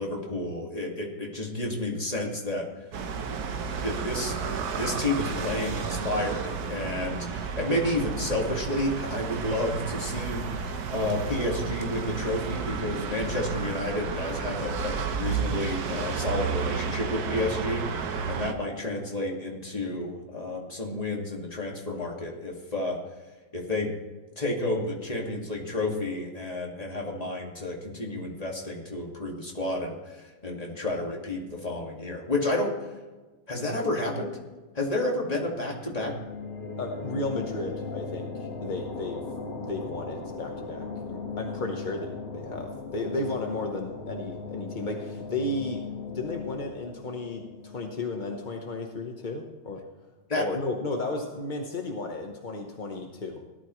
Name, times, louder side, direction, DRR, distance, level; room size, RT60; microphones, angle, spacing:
voice 1, 0.0-2.7 3.8-4.3 4.7-6.4 6.7-23.0 23.5-23.9 24.4-32.7 33.5-34.3 34.7-36.1 50.3-50.5, left 1 dB, 20° left, -1 dB, 2.0 m, -30 dB
sound 1, 2.9-18.5, right 5 dB, 60° right, 1.2 m, -32 dB
sound 2, 35.8-49.2, left 4 dB, 60° left, 2.0 m, -38 dB
voice 2, 36.8-39.2 39.6-45.9 46.1-49.8 50.4-53.4, left 2 dB, 40° left, 2 dB, 0.7 m, -34 dB
17.5 x 12.0 x 3.1 m, 1.2 s
omnidirectional pair, 2.2 m